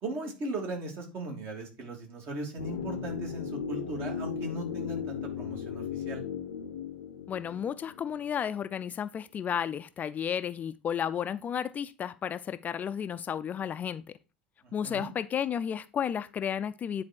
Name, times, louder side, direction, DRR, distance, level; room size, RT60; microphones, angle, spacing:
voice 1, 0.0-6.2 14.6-15.1, right 1 dB, 45° right, 3.1 m, -38 dB
sound 1, 2.6-8.6 8.8-8.9, left 7 dB, 75° left, 0.6 m, -37 dB
voice 2, 7.3-14.2 14.7-17.0, left 8 dB, 30° left, 0.5 m, -33 dB
9.7 x 4.2 x 4.5 m
figure-of-eight pair, 75°, 5 cm